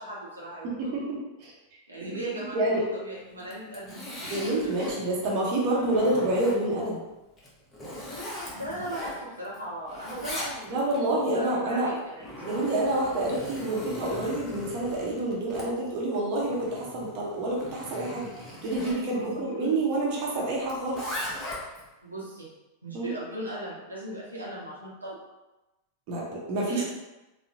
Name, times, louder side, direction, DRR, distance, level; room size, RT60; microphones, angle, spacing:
voice 1, 0.0-1.0 1.9-4.9 5.6-5.7 8.5-12.6 19.1-19.7 22.0-22.5 22.8-25.2 26.6-26.9, right 1 dB, 80° right, -6 dB, 0.8 m, -38 dB
voice 2, 0.8-1.5 2.0-2.2 2.5-2.8 4.3-7.0 10.7-11.9 12.5-18.3 18.6-21.0 22.9-23.1 26.1-26.9, right 1 dB, 40° right, -3 dB, 0.8 m, -28 dB
Zipper (clothing), 3.4-5.0 5.5-6.9 7.4-9.6 9.9-11.0 11.9-19.0 20.7-21.9, left 1 dB, 15° left, 0.8 m, -39 dB
3.6 x 2.1 x 2.8 m, 1.0 s
figure-of-eight pair, 90°, 0 cm